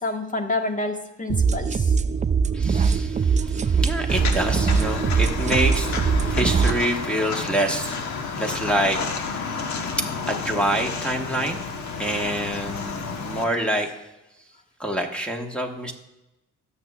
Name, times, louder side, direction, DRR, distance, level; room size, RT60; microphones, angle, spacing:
voice 1, 0.0-2.0 3.6-3.7, left 2 dB, 25° left, 4 dB, 1.4 m, -28 dB
sound 1, 1.3-6.8, right 5 dB, 25° right, 0.4 m, -22 dB
voice 2, 2.5-13.9 14.8-15.9, right 1 dB, 5° left, 2 dB, 1.4 m, -27 dB
Walk footsteps, 4.1-13.4, left 5 dB, 65° left, 1.2 m, -31 dB
18.0 x 7.0 x 2.4 m, 0.98 s
cardioid pair, 90°, 30 cm